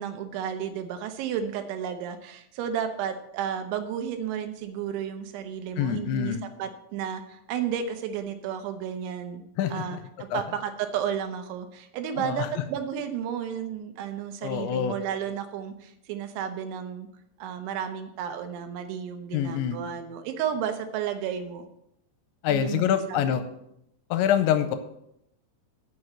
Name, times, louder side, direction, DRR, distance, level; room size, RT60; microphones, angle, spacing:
voice 1, 0.0-9.4 9.7-17.1 17.4-21.7 22.5-22.8 23.1-23.3, right 8 dB, 80° right, 8 dB, 3.1 m, -32 dB
voice 2, 5.8-6.4 9.6-10.0 10.3-10.4 12.2-12.6 14.4-15.0 19.3-19.8 22.4-23.4 24.1-24.8, left 9 dB, 85° left, 10 dB, 2.8 m, -25 dB
7.7 x 5.9 x 7.7 m, 0.77 s
omnidirectional pair, 5.5 m